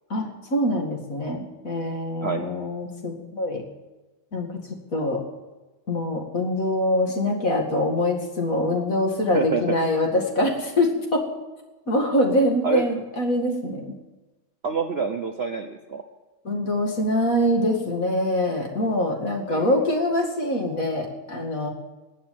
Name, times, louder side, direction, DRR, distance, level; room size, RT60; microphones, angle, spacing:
voice 1, 0.1-3.6 4.3-4.6 4.9-5.2 5.9-11.3 11.9-13.9 16.4-21.7, left 1 dB, 40° left, 2 dB, 2.5 m, -24 dB
voice 2, 9.3-9.8 12.6-12.8 14.6-16.0 19.5-19.8, right 5 dB, 80° right, 4 dB, 0.5 m, -27 dB
19.5 x 7.2 x 9.5 m, 1.2 s
omnidirectional pair, 2.3 m